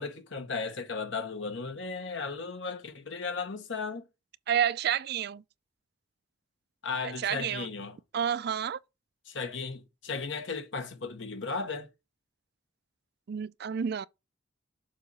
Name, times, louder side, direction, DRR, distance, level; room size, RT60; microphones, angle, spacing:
voice 1, 0.0-4.0 6.8-8.0 9.3-11.9, left 4 dB, 65° left, 1.0 m, -35 dB
voice 2, 4.5-5.4 7.0-7.7 8.1-8.8 13.3-14.1, right 8 dB, 55° right, 0.4 m, -30 dB
6.9 x 3.0 x 5.4 m
head